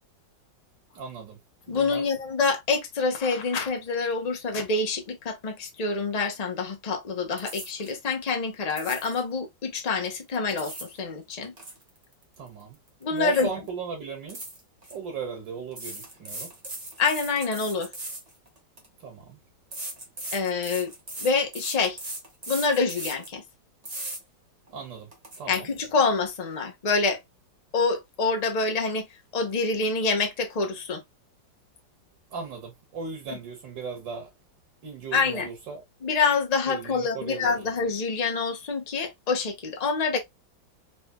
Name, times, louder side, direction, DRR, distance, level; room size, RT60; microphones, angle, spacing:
voice 1, 0.9-1.4 1.7-2.1 12.4-12.8 13.1-14.4 14.9-16.5 19.0-19.4 24.7-25.1 25.4-25.7 32.3-34.3 34.8-35.8 36.7-37.6, right 5 dB, 75° right, 1.9 m, -37 dB
voice 2, 1.7-11.5 13.0-13.5 17.0-17.9 20.3-20.9 21.2-22.0 22.5-23.4 25.5-27.2 27.7-29.1 29.3-31.0 35.1-35.5 36.0-40.2, left 4 dB, 40° left, 0.5 m, -26 dB
sound 1, 7.4-8.0 8.7-9.2 10.3-11.0 11.3-13.2 13.4-13.7 14.3-14.9 15.7-18.9 19.7-23.3 23.8-24.2 24.7-24.8 25.1-25.4, right 1 dB, 25° right, 0.9 m, -38 dB
4.0 x 3.2 x 2.2 m
omnidirectional pair, 2.0 m